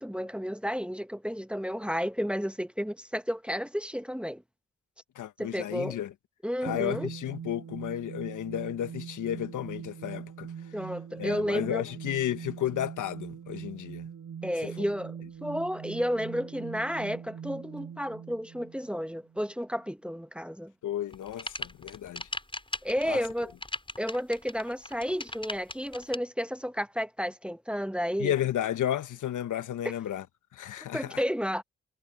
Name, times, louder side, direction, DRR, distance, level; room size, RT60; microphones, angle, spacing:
voice 1, 0.0-4.4 5.4-6.0 6.4-7.1 10.7-11.8 14.4-20.7 22.8-23.5 24.0-28.3 30.9-31.6, equal, 5° right, 1.3 m, -32 dB
voice 2, 5.1-6.1 6.6-10.5 11.2-14.1 20.8-22.3 23.0-23.2 28.2-30.2 30.5-31.2, left 11 dB, 80° left, 1.5 m, -33 dB
sound 1, 6.7-19.5, right 7 dB, 65° right, 4.9 m, -42 dB
sound 2, 21.1-26.2, left 1 dB, 15° left, 7.3 m, -38 dB
supercardioid pair, 40°, 30 cm